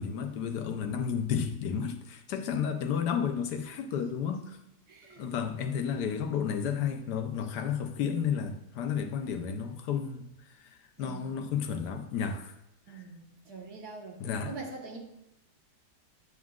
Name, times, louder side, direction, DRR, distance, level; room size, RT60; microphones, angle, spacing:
voice 1, 0.0-4.6 5.2-10.3 11.0-12.5 12.9-13.0 14.2-14.5, left 7 dB, 75° left, 6 dB, 1.3 m, -32 dB
voice 2, 4.9-5.3 11.0-11.6 12.9-15.0, right 3 dB, 65° right, 0 dB, 1.8 m, -44 dB
9.3 x 8.2 x 2.4 m, 0.86 s
omnidirectional pair, 1.8 m